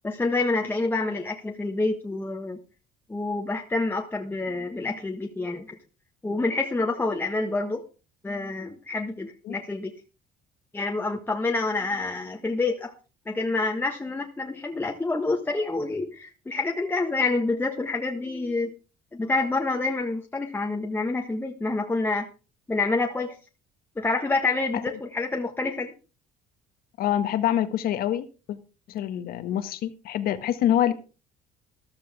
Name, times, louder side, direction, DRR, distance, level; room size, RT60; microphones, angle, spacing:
voice 1, 0.0-2.6 3.1-5.8 6.2-7.8 8.2-9.9 10.7-12.9 13.3-18.7 19.1-22.3 22.7-23.3 24.0-25.9, left 3 dB, 10° left, 2 dB, 1.4 m, -27 dB
voice 2, 27.0-28.6 28.9-30.9, left 11 dB, 60° left, 10 dB, 1.6 m, -26 dB
14.0 x 12.0 x 3.6 m, 0.33 s
cardioid pair, 105°, 17 cm